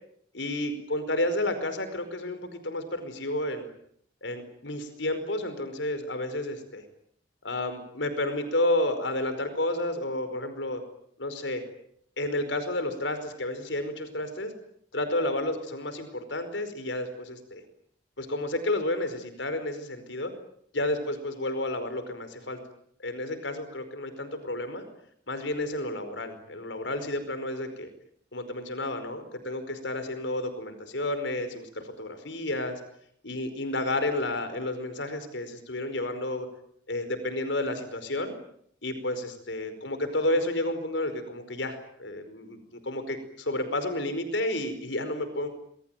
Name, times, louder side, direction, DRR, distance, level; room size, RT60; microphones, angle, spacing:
voice 1, 0.3-3.7 4.2-6.8 7.4-10.8 11.2-11.6 12.2-14.5 14.9-17.6 18.2-20.3 20.7-22.6 23.0-24.8 25.3-27.9 28.3-32.7 33.2-36.5 36.9-38.3 38.8-45.5, left 1 dB, 85° left, 9 dB, 5.0 m, -31 dB
27.0 x 21.5 x 9.3 m, 0.67 s
head